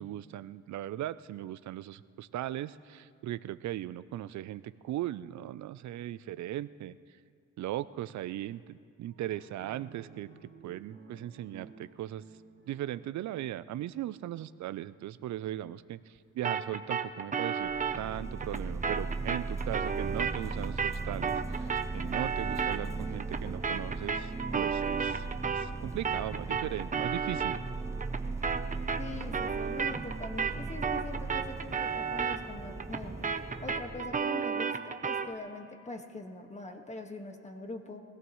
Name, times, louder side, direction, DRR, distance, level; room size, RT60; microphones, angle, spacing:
voice 1, 0.0-7.2 7.6-10.3 10.6-12.2 12.7-27.6, right 13 dB, 70° right, 16 dB, 0.6 m, -38 dB
sound 1, 9.1-14.6, right 5 dB, 45° right, 2.8 m, -55 dB
sound 2, 16.4-25.8 26.0-35.3, right 6 dB, 25° right, 0.8 m, -34 dB
sound 3, 17.6-34.2, right 3 dB, 10° right, 0.3 m, -38 dB
voice 2, 29.0-38.0, left 2 dB, 25° left, 4 dB, 1.7 m, -43 dB
23.5 x 17.0 x 3.2 m, 2.2 s
cardioid pair, 90°, 30 cm